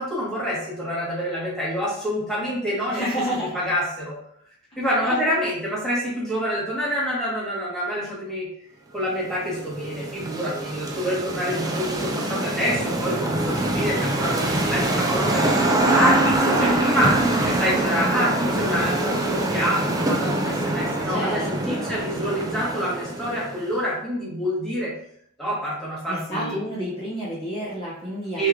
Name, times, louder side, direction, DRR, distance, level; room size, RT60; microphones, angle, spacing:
voice 1, 0.0-4.1 4.8-8.5 8.9-17.1 17.4-24.9 25.4-26.6 28.4-28.5, equal, ahead, -8 dB, 1.2 m, -27 dB
voice 2, 2.9-3.6 5.0-5.2 21.1-22.0 26.1-28.5, equal, 25° left, -8 dB, 0.8 m, -30 dB
sound 1, 9.2-23.7, right 2 dB, 15° right, 0.4 m, -24 dB
3.4 x 3.1 x 2.4 m, 0.67 s
head